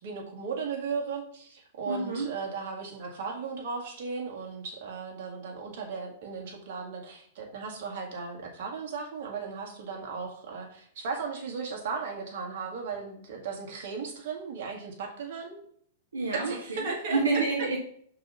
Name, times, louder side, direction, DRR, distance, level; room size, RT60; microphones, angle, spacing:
voice 1, 0.0-15.6 16.3-17.2, right 5 dB, 60° right, 0 dB, 1.9 m, -36 dB
voice 2, 1.9-2.3 16.1-17.8, right 3 dB, 80° right, -1 dB, 1.2 m, -29 dB
5.4 x 4.1 x 5.4 m, 0.64 s
hypercardioid pair, 105°, 0 cm